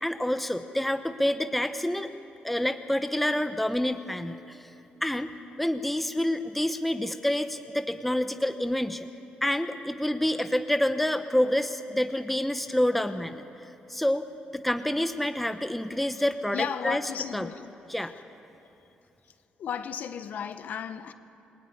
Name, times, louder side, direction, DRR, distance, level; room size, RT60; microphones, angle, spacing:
voice 1, 0.0-2.1 2.4-4.6 5.0-9.1 9.4-13.4 13.9-14.3 14.5-17.0 17.3-17.5 17.9-18.1, left 1 dB, 5° left, 0.9 m, -28 dB
voice 2, 16.5-17.7 19.6-21.1, left 8 dB, 60° left, 1.3 m, -34 dB
29.0 x 21.5 x 9.6 m
cardioid pair, 160°, 3 cm